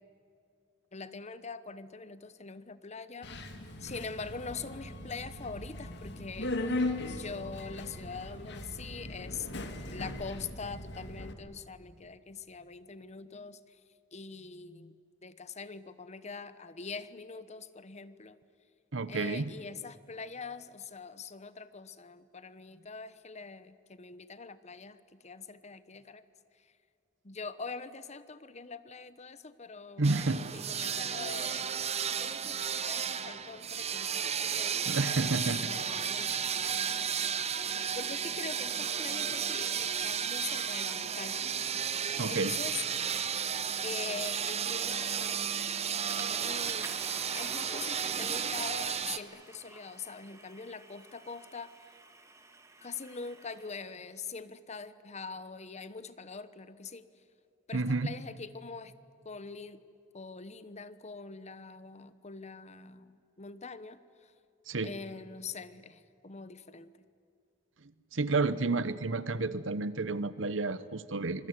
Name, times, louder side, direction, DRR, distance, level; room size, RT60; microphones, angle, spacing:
voice 1, 0.9-3.3 3.8-6.8 7.1-9.5 9.9-13.8 14.1-18.4 19.1-26.2 26.6-26.7 27.2-30.0 30.3-31.6 32.2-35.4 35.7-41.5 42.3-42.8 43.8-45.5 46.4-47.0 47.3-51.7 52.8-57.1 57.7-58.9 59.2-59.8 60.1-64.3 64.8-66.9, left 4 dB, 35° left, 14 dB, 1.0 m, -43 dB
Subway metro underground, 3.2-11.3, left 2 dB, 65° left, 2.3 m, -38 dB
voice 2, 18.9-19.5 30.0-30.5 34.9-35.7 42.2-42.6 57.7-58.1 64.7-64.9 68.1-71.5, right 3 dB, 80° right, 15 dB, 1.0 m, -30 dB
sound 1, 30.0-49.2, right 7 dB, 35° right, 0.9 m, -33 dB
Water / Toilet flush, 46.1-54.0, right 2 dB, 15° right, 2.2 m, -49 dB
26.5 x 21.0 x 9.6 m, 2.5 s
head